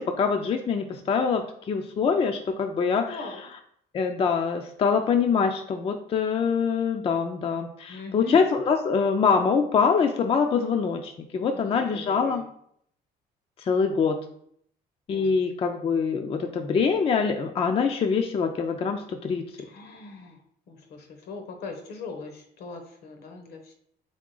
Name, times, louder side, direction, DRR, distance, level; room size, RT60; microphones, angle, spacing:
voice 1, 0.0-3.2 3.9-12.4 13.6-14.2 15.1-19.5, left 5 dB, 35° left, 5 dB, 0.4 m, -24 dB
voice 2, 3.1-3.5 7.9-8.4 11.5-12.4 15.1-15.4 19.6-20.4 20.7-23.7, left 3 dB, 70° left, 5 dB, 0.9 m, -40 dB
3.7 x 3.6 x 3.8 m, 0.68 s
cardioid pair, 110°, 17 cm